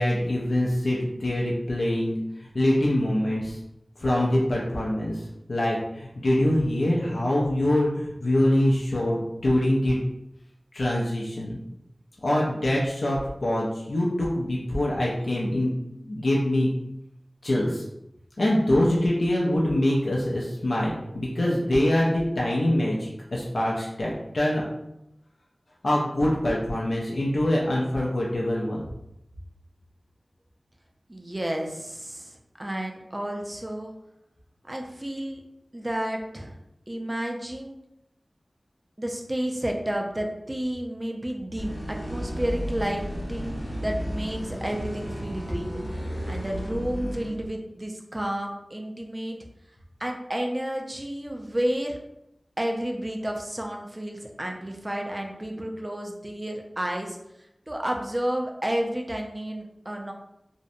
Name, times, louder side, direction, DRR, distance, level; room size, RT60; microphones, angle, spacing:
voice 1, 0.0-3.6 4.0-10.0 10.7-11.6 12.2-16.7 17.4-17.8 18.4-24.6 25.8-28.8, left 1 dB, 80° left, -4 dB, 0.4 m, -24 dB
voice 2, 31.1-33.9 34.6-35.4 35.7-36.6 36.9-37.8 39.0-49.4 50.0-52.0 52.6-57.2 57.7-60.1, right 1 dB, 30° right, 1 dB, 0.4 m, -31 dB
sound 1, 41.6-47.3, equal, 50° left, 0.9 m, -33 dB
2.6 x 2.1 x 2.6 m, 0.83 s
wide cardioid pair, 50°, 0 cm